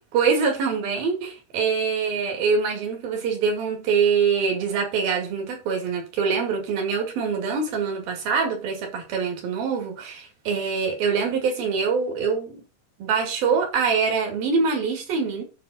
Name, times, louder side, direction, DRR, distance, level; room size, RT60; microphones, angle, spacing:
voice 1, 0.1-12.6 13.0-15.4, right 5 dB, 70° right, 4.1 m, -24 dB
10.0 x 3.7 x 6.7 m
omnidirectional pair, 4.5 m